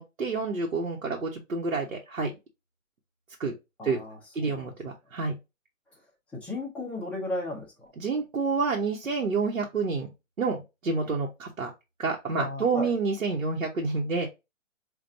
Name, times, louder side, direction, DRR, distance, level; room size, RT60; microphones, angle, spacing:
voice 1, 0.0-2.3 3.4-3.5 3.8-4.0 4.3-5.4 8.0-10.1 10.4-11.7 12.0-14.3, right 4 dB, 85° right, -1 dB, 1.1 m, -28 dB
voice 2, 3.8-4.7 6.3-7.9 12.4-12.9, left 2 dB, 5° left, -4 dB, 0.5 m, -35 dB
5.4 x 2.5 x 2.5 m, 0.24 s
figure-of-eight pair, 135°, 39 cm